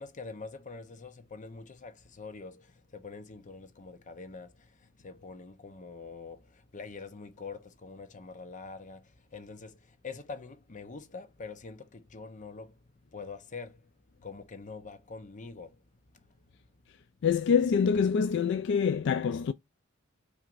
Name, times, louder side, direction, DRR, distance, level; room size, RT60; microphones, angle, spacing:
voice 1, 0.0-12.8 13.1-13.9 14.2-15.8, left 4 dB, 40° left, 0.8 m, -45 dB
voice 2, 17.2-19.5, left 6 dB, 60° left, 0.3 m, -25 dB
5.9 x 3.3 x 2.5 m
head